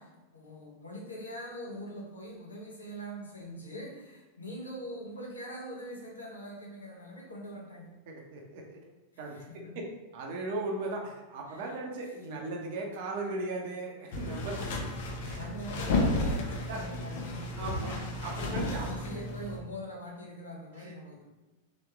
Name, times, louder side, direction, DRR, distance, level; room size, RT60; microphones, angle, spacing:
voice 1, 0.0-7.9 9.2-9.7 11.5-11.8 14.6-14.7 15.3-17.5 17.8-18.0 18.4-21.2, equal, 75° left, -2 dB, 0.9 m, -43 dB
voice 2, 8.1-8.8 9.2-9.4 10.1-14.6 15.2-15.5 16.7-16.8 17.6-19.2 20.8-20.9, right 2 dB, 50° right, 1 dB, 0.8 m, -37 dB
sound 1, 14.1-19.6, left 2 dB, 50° left, 0.7 m, -33 dB
3.4 x 3.1 x 3.5 m, 1.1 s
figure-of-eight pair, 90°, 0 cm